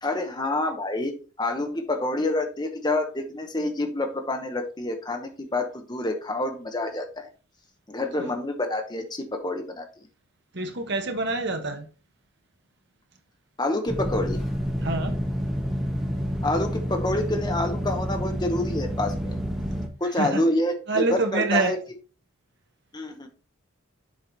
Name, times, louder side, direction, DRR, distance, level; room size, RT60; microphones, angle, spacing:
voice 1, 0.0-7.3 7.9-9.9 13.6-14.4 16.4-19.4 20.0-21.1 21.3-21.8 22.9-23.3, left 2 dB, 20° left, 0.9 m, -27 dB
voice 2, 10.5-11.8 14.8-15.2 20.2-20.4 20.9-21.7, right 2 dB, 55° right, 1.3 m, -26 dB
sound 1, 13.9-19.9, equal, ahead, 1.1 m, -29 dB
7.4 x 4.9 x 4.0 m
head